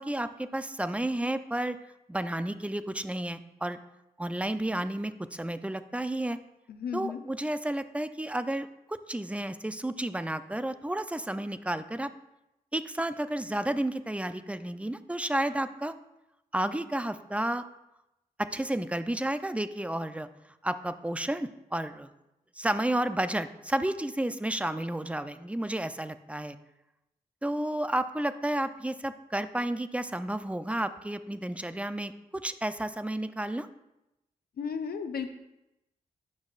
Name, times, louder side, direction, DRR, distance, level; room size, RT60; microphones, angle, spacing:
voice 1, 0.0-1.8 2.1-3.8 4.2-6.4 6.9-12.1 12.7-15.9 16.5-17.6 18.4-20.3 20.6-22.1 22.6-26.6 27.4-33.7, right 1 dB, 10° right, 11 dB, 0.5 m, -31 dB
voice 2, 6.7-7.2 34.6-35.3, left 6 dB, 75° left, 7 dB, 0.7 m, -34 dB
9.4 x 6.0 x 2.5 m, 0.91 s
supercardioid pair, 45°, 16 cm